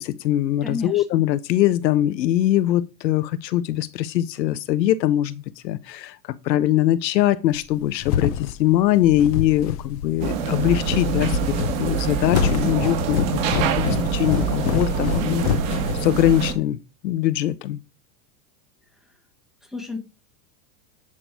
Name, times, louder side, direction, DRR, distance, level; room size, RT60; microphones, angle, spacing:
voice 1, 0.0-6.1 6.4-15.6 16.0-16.8 17.0-17.8, left 13 dB, 85° left, 1.1 m, -22 dB
voice 2, 0.6-1.2 19.6-20.0, left 3 dB, ahead, 1.1 m, -31 dB
sound 1, 7.6-16.5, left 9 dB, 25° left, 0.5 m, -27 dB
sound 2, 10.2-16.5, right 6 dB, 50° right, 2.9 m, -25 dB
9.9 x 6.0 x 4.8 m
supercardioid pair, 175°, 49 cm